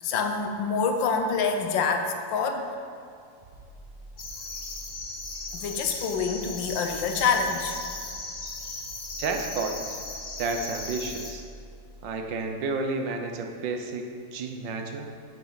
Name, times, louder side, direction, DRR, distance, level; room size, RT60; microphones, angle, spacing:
voice 1, 0.0-2.7 5.5-7.8, left 5 dB, 75° left, 5 dB, 1.5 m, -26 dB
sound 1, 3.4-12.5, right 1 dB, 30° right, 1.3 m, -47 dB
sound 2, 4.2-11.3, left 3 dB, 45° left, 0.5 m, -37 dB
voice 2, 9.2-10.0 10.4-11.4 12.0-15.1, right 3 dB, 75° right, 4 dB, 1.4 m, -31 dB
9.7 x 7.6 x 4.0 m, 2.5 s
omnidirectional pair, 2.1 m